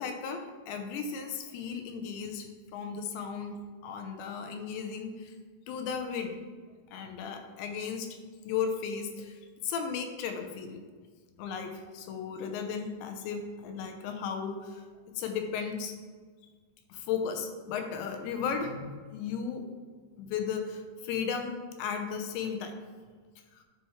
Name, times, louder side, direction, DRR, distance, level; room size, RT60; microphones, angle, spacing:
voice 1, 0.0-2.5 2.7-3.6 3.8-5.3 5.7-6.4 6.9-8.2 8.4-10.8 11.4-14.8 15.1-16.0 16.9-19.6 20.2-21.5 21.8-22.8 23.5-23.6, left 6 dB, 80° left, 5 dB, 2.9 m, -35 dB
11.0 x 5.8 x 3.2 m, 1.5 s
omnidirectional pair, 5.3 m